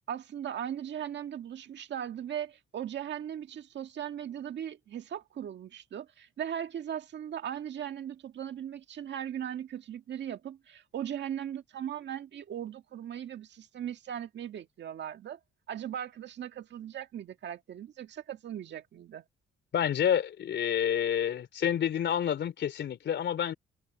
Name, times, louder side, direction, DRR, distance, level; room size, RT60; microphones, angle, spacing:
voice 1, 0.1-15.4 15.7-19.2, right 10 dB, 65° right, 1.8 m, -38 dB
voice 2, 19.7-23.5, left 9 dB, 65° left, 3.6 m, -28 dB
cardioid pair, 90°, 20 cm